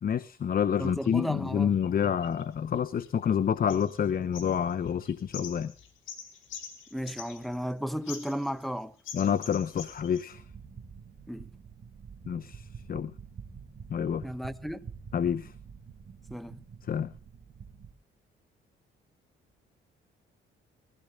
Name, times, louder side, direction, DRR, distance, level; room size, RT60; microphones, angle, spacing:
voice 1, 0.0-5.7 9.1-10.4 12.3-13.1 13.9-14.2 15.1-15.5 16.9-17.1, left 8 dB, 45° left, 0.9 m, -28 dB
voice 2, 0.8-1.7 6.9-8.9 11.3-11.4 14.2-14.8 16.3-16.6, equal, ahead, 1.3 m, -34 dB
sound 1, 0.9-1.1 1.8-3.3 3.7-4.1 4.3-7.7 8.0-8.7 9.0-10.2, left 7 dB, 80° left, 4.4 m, -45 dB
sound 2, 10.3-17.9, right 6 dB, 45° right, 2.3 m, -47 dB
24.5 x 15.5 x 2.5 m
cardioid pair, 90°, 20 cm